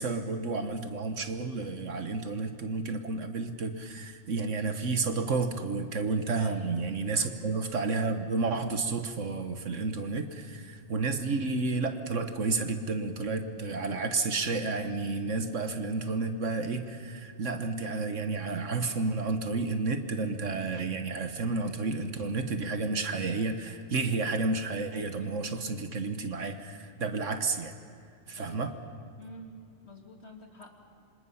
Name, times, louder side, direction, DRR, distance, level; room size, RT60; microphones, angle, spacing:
voice 1, 0.0-27.8 28.3-28.7, right 3 dB, 60° right, 7 dB, 1.6 m, -31 dB
voice 2, 6.4-6.8 7.1-7.3 28.4-28.7 29.2-29.6 29.8-30.7, left 1 dB, 50° left, 2 dB, 2.7 m, -48 dB
27.5 x 25.5 x 5.8 m, 2.4 s
omnidirectional pair, 1.5 m